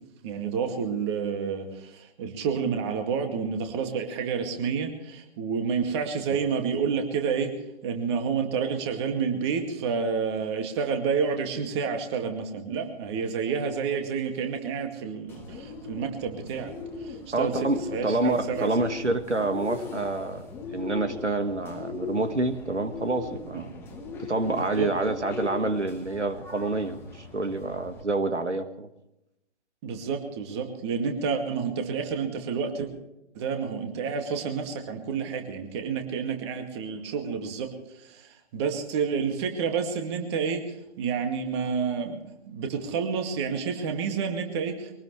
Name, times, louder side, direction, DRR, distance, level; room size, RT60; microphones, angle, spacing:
voice 1, 0.2-7.5 7.8-16.7 17.0-18.7 24.5-24.9 29.8-32.9 33.3-45.0, right 6 dB, 25° right, 5 dB, 2.2 m, -29 dB
Bird, 15.3-28.0, left 4 dB, 5° left, 1.5 m, -39 dB
voice 2, 17.3-20.5 20.7-23.7 24.2-28.9, right 2 dB, 85° right, 9 dB, 1.6 m, -28 dB
23.0 x 19.0 x 3.3 m, 0.88 s
figure-of-eight pair, 140°, 34 cm